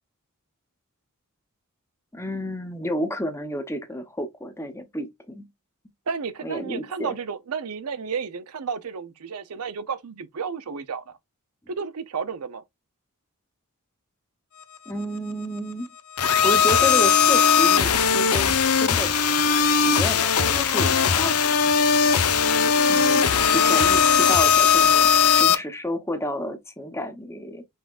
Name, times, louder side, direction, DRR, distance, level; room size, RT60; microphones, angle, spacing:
voice 1, 2.1-5.5 6.4-7.1 14.9-15.9 16.4-19.1 19.9-21.6 22.9-25.1 25.4-27.6, equal, 10° left, 0.9 m, -31 dB
voice 2, 6.1-11.2 11.7-12.6, right 6 dB, 85° right, 0.6 m, -32 dB
sound 1, 16.2-25.5, left 6 dB, 85° left, 0.8 m, -19 dB
5.6 x 3.6 x 2.4 m
head